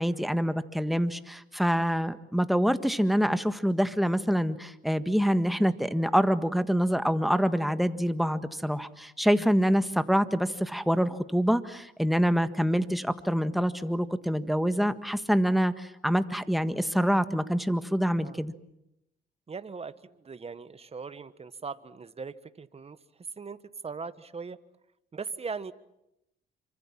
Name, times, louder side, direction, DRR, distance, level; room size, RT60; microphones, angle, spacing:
voice 1, 0.0-18.5, equal, ahead, 10 dB, 1.6 m, -26 dB
voice 2, 19.5-23.0 23.4-23.6 23.8-24.6 25.1-25.7, right 5 dB, 30° right, 13 dB, 1.5 m, -39 dB
27.5 x 25.0 x 7.5 m, 0.83 s
cardioid pair, 90°, 20 cm